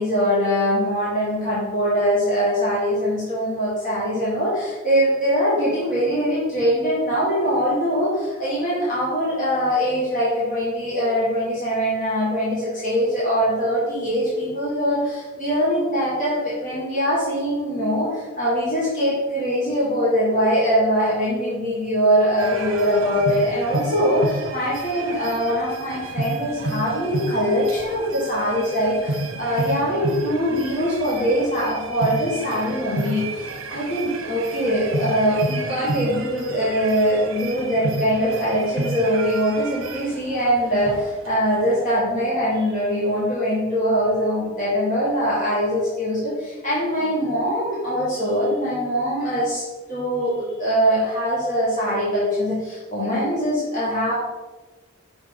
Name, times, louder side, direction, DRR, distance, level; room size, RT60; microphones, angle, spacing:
voice 1, 0.0-49.6 49.9-54.1, equal, 40° left, -8 dB, 1.9 m, -22 dB
sound 1, 22.4-42.1, right 2 dB, 65° right, 0.8 m, -31 dB
6.2 x 5.4 x 3.8 m, 1.2 s
head